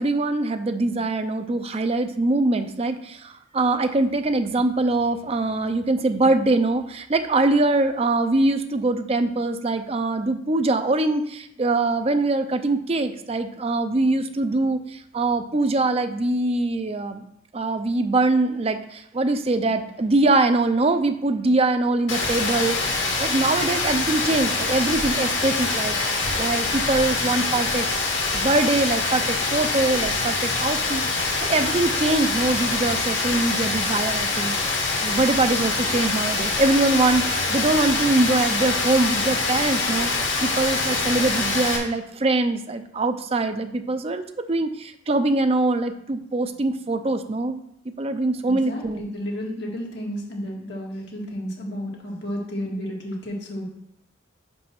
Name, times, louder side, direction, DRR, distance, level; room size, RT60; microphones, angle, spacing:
voice 1, 0.0-17.2 17.5-27.9 28.2-31.1 31.4-34.6 35.0-44.2 44.5-47.6 48.0-49.0, right 2 dB, 30° right, 8 dB, 0.5 m, -23 dB
Rain, 22.1-41.8, left 3 dB, 80° left, 1.7 m, -24 dB
voice 2, 48.5-53.7, equal, 60° left, -1 dB, 1.9 m, -32 dB
5.4 x 5.3 x 5.9 m, 0.77 s
head